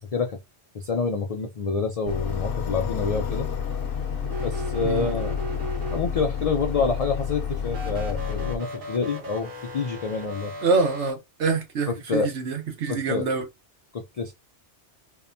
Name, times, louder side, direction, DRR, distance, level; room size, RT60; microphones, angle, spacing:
voice 1, 0.7-3.5 4.4-5.4 5.9-10.5 12.1-12.3 12.9-13.3 13.9-14.3, left 4 dB, 75° left, 0.3 m, -27 dB
sound 1, 2.1-8.6, left 7 dB, 60° left, 0.7 m, -30 dB
sound 2, 4.2-6.4 7.7-11.1, equal, 50° right, 1.1 m, -36 dB
voice 2, 10.6-13.5, right 4 dB, 80° right, 1.1 m, -25 dB
2.8 x 2.1 x 2.4 m
omnidirectional pair, 1.2 m